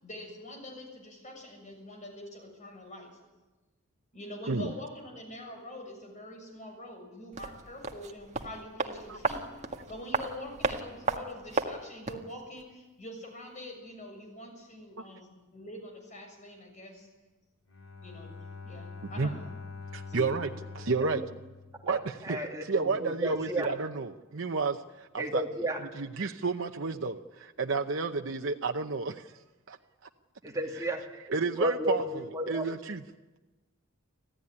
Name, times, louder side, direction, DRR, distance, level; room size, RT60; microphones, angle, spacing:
voice 1, 0.0-3.1 4.1-9.4 9.9-17.1 18.0-18.3 18.6-19.5 20.1-20.2, left 1 dB, 35° left, 3 dB, 6.9 m, -44 dB
sound 1, 7.3-12.3 12.6-12.7, right 3 dB, 35° right, 1.7 m, -34 dB
Bowed string instrument, 17.7-22.5, left 4 dB, 80° left, 3.2 m, -45 dB
voice 2, 19.9-20.5 20.7-21.2 21.8-25.4 25.9-29.4 29.7-29.8 30.7-30.8 31.3-33.0, right 4 dB, 65° right, 4 dB, 0.8 m, -31 dB
voice 3, 22.2-23.7 25.2-25.8 30.4-31.0 31.6-32.0 32.3-32.7, right 1 dB, 15° right, 0 dB, 2.7 m, -32 dB
26.5 x 15.5 x 9.8 m, 1.2 s
head